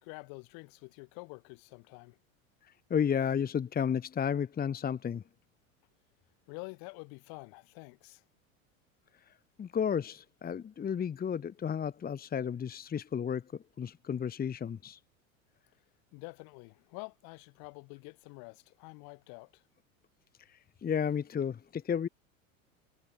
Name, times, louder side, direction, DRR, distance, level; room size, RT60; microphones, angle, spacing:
voice 1, 0.0-2.2 6.5-8.2 16.1-19.6, left 33 dB, 55° left, 5.1 m, -47 dB
voice 2, 2.6-5.2 9.3-9.4 9.6-15.0 20.4-22.1, left 7 dB, 20° left, 1.2 m, -33 dB
hypercardioid pair, 85°, 41 cm